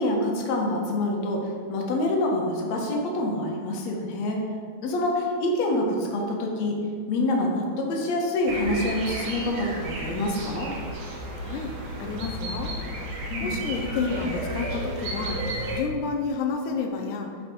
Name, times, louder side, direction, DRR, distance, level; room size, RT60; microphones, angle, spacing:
voice 1, 0.0-4.4 4.8-6.8 7.1-10.7 13.3-13.6, left 1 dB, 65° left, 0 dB, 2.5 m, -26 dB
sound 1, 8.5-15.8, right 1 dB, 85° right, 2.9 m, -33 dB
voice 2, 11.4-11.7 12.0-12.7 13.4-15.4 15.7-17.3, left 5 dB, 90° left, 2 dB, 2.3 m, -30 dB
12.0 x 6.8 x 4.5 m, 2.2 s
omnidirectional pair, 3.5 m